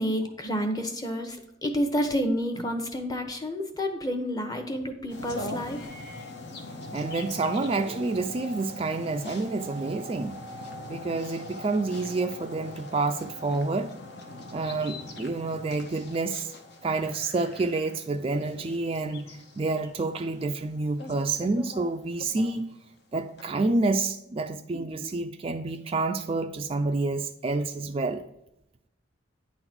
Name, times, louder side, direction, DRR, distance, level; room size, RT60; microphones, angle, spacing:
voice 1, 0.0-5.9, equal, 20° left, 0.9 m, -29 dB
sound 1, 5.1-22.8 23.4-23.5, left 1 dB, 60° left, 0.9 m, -42 dB
voice 2, 6.9-10.4 10.9-13.9 14.5-16.5 16.8-22.7 23.1-28.2, right 3 dB, 30° right, 0.3 m, -28 dB
9.7 x 3.9 x 6.0 m
head